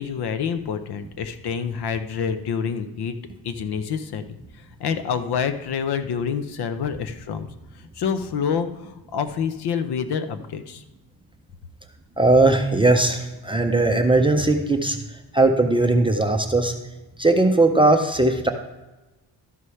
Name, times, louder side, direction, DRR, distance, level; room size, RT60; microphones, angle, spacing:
voice 1, 0.0-3.2 3.4-7.5 7.7-10.8, left 6 dB, 65° left, 9 dB, 0.8 m, -27 dB
voice 2, 12.2-16.7 17.2-18.5, right 2 dB, 15° right, 3 dB, 0.4 m, -19 dB
12.5 x 4.8 x 5.6 m, 1.1 s
cardioid pair, 175°, 42 cm